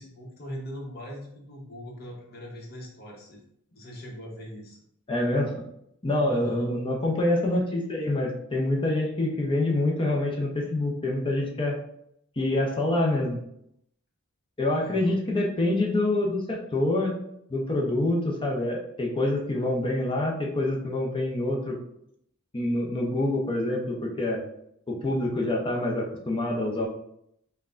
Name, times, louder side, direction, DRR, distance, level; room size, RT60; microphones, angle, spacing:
voice 1, 0.0-3.4 3.7-4.8 6.2-6.8 14.8-15.2, equal, 45° left, -2 dB, 0.9 m, -40 dB
voice 2, 5.1-5.6 6.0-11.8 12.4-13.4 14.6-17.2 17.5-21.8 22.5-24.4 24.9-26.9, left 1 dB, 25° left, -1 dB, 0.6 m, -26 dB
5.6 x 2.2 x 2.5 m, 0.74 s
head